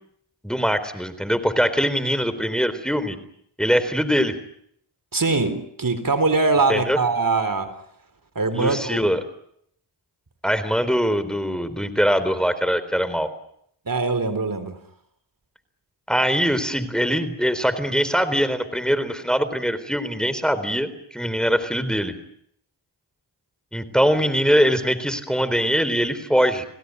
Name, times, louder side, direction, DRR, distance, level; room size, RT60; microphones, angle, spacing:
voice 1, 0.4-3.2 3.6-4.4 6.7-7.0 8.5-9.2 10.4-13.3 16.1-22.2 23.7-26.7, equal, ahead, 13 dB, 3.8 m, -22 dB
voice 2, 5.1-7.7 8.4-9.0 13.9-14.8, right 3 dB, 45° right, 10 dB, 3.8 m, -22 dB
29.5 x 18.0 x 9.7 m, 0.72 s
cardioid pair, 45°, 46 cm